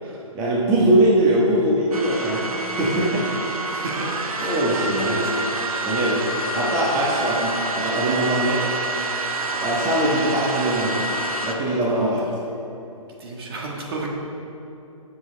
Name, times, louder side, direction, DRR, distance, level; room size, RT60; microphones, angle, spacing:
voice 1, 0.3-3.3 3.8-3.9 4.4-5.2 5.8-6.2 6.5-8.7 9.6-11.0 11.4-12.3, right 1 dB, 20° right, -6 dB, 1.3 m, -21 dB
sound 1, 1.9-11.5, right 2 dB, 85° right, 1.1 m, -27 dB
voice 2, 3.7-4.1 4.3-5.5 11.9-12.3 13.2-14.1, right 2 dB, 45° right, -2 dB, 1.6 m, -32 dB
12.0 x 7.2 x 3.4 m, 2.9 s
hypercardioid pair, 150°, 18 cm